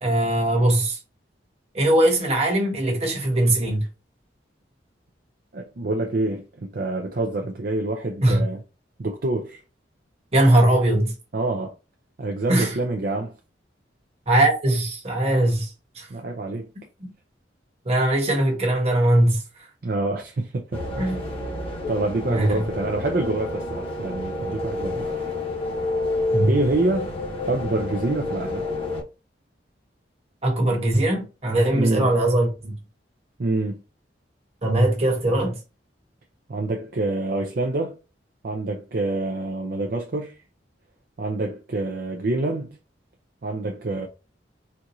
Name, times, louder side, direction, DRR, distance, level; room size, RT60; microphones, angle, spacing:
voice 1, 0.0-1.0 1.7-3.8 8.2-8.4 10.3-11.1 12.5-12.8 14.3-15.7 15.9-16.1 17.0-17.1 17.8-19.4 21.0-21.2 22.3-22.6 26.3-26.5 30.4-32.7 34.6-35.6, right 1 dB, 35° right, 1.2 m, -20 dB
voice 2, 5.5-8.6 9.0-9.6 11.3-11.7 12.2-13.3 16.1-16.7 19.8-20.8 21.9-25.1 26.4-27.1 27.5-28.6 31.7-32.1 33.4-33.8 36.5-38.0 38.4-40.4 41.2-42.8 43.4-44.1, right 2 dB, 55° right, 0.5 m, -26 dB
sound 1, 20.7-29.0, left 2 dB, 30° left, 1.0 m, -29 dB
4.4 x 2.4 x 2.7 m
head